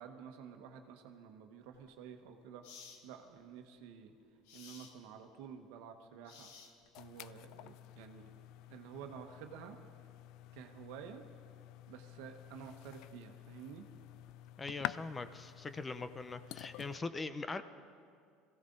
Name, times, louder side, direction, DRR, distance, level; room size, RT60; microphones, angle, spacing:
voice 1, 0.0-2.7 3.0-4.1 4.5-6.5 7.0-8.4 8.7-9.8 10.5-11.2 11.9-13.9, right 7 dB, 80° right, 5 dB, 1.2 m, -51 dB
sound 1, 1.7-1.9 2.6-3.0 4.5-5.0 6.2-7.0, left 6 dB, 85° left, 1.5 m, -54 dB
sound 2, 6.9-17.0, left 15 dB, 70° left, 0.3 m, -49 dB
voice 2, 14.6-17.6, left 3 dB, 20° left, 12 dB, 0.6 m, -41 dB
21.5 x 16.0 x 3.9 m, 2.3 s
supercardioid pair, 120°, 0 cm